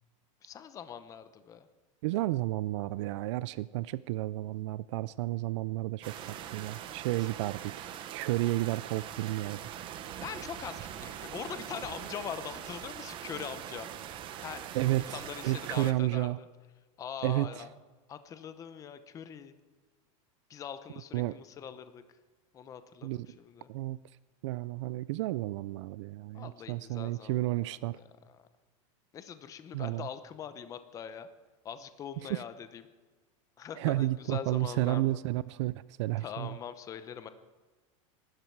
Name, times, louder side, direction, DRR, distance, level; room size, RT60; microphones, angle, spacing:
voice 1, 0.4-1.7 6.1-6.3 7.1-7.3 10.2-13.9 14.4-16.5 17.0-17.7 18.1-19.5 20.5-22.0 22.5-23.7 26.3-28.4 29.1-31.3 31.6-32.8 33.6-35.1 36.2-37.3, left 8 dB, 20° left, 11 dB, 0.8 m, -43 dB
voice 2, 2.0-9.6 14.7-16.4 17.2-17.6 21.1-21.4 23.0-23.3 23.7-24.0 24.4-28.0 29.7-30.1 32.3-32.4 33.8-35.7 36.0-36.5, right 17 dB, 60° right, 18 dB, 0.4 m, -32 dB
sound 1, 6.0-15.9, right 10 dB, 30° right, 1.0 m, -42 dB
24.5 x 12.5 x 4.7 m, 1.4 s
supercardioid pair, 160°, 17 cm